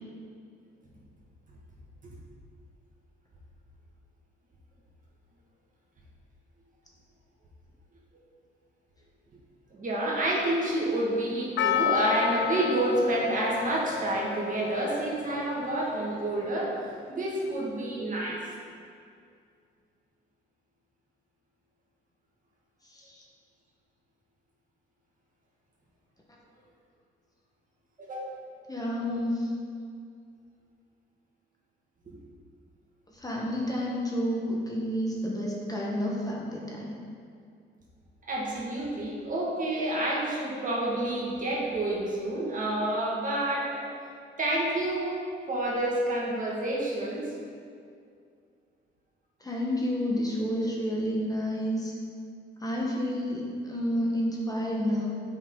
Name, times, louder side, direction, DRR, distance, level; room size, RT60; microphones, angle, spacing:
voice 1, 9.7-18.4 28.0-28.3 32.1-32.2 38.3-43.8 44.4-45.2 45.5-47.3, right 1 dB, 40° right, -4 dB, 1.9 m, -29 dB
Percussion, 11.6-16.2, left 9 dB, 65° left, 0.5 m, -31 dB
voice 2, 22.8-23.2 28.7-29.5 33.1-37.0 49.4-51.9 52.6-55.1, equal, 20° left, -3 dB, 1.3 m, -30 dB
8.0 x 5.8 x 3.9 m, 2.3 s
cardioid pair, 90°, 20 cm